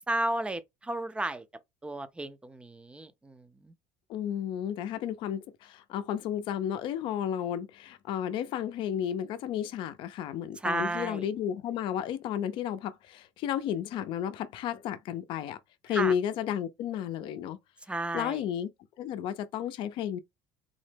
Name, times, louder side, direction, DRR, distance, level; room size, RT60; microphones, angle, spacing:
voice 1, 0.1-1.4 1.8-3.7 10.6-11.3 15.9-16.1 17.9-18.4, right 2 dB, 10° right, 0.5 m, -33 dB
voice 2, 4.1-17.6 18.1-18.7 19.0-20.2, left 9 dB, 60° left, 0.5 m, -32 dB
3.8 x 2.1 x 3.3 m
supercardioid pair, 100°, 10 cm